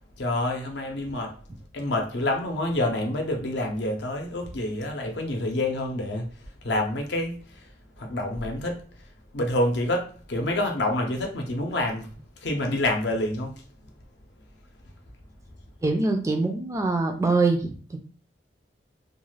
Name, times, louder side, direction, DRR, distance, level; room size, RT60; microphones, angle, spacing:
voice 1, 0.2-1.4 1.7-13.9, left 1 dB, 70° left, 0.6 m, -28 dB
voice 2, 15.8-18.0, right 3 dB, 15° right, 0.3 m, -24 dB
2.4 x 2.3 x 3.2 m
head